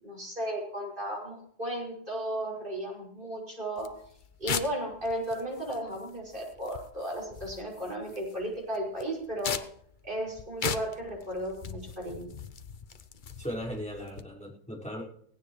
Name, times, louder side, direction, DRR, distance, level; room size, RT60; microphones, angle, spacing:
voice 1, 0.0-3.9 4.4-9.6 10.0-12.3, right 1 dB, 30° right, -2 dB, 6.4 m, -35 dB
sound 1, 3.8-14.2, left 6 dB, 40° left, 0.8 m, -40 dB
voice 2, 13.4-15.0, equal, 5° left, -5 dB, 5.2 m, -37 dB
18.0 x 17.0 x 3.2 m, 0.66 s
omnidirectional pair, 1.7 m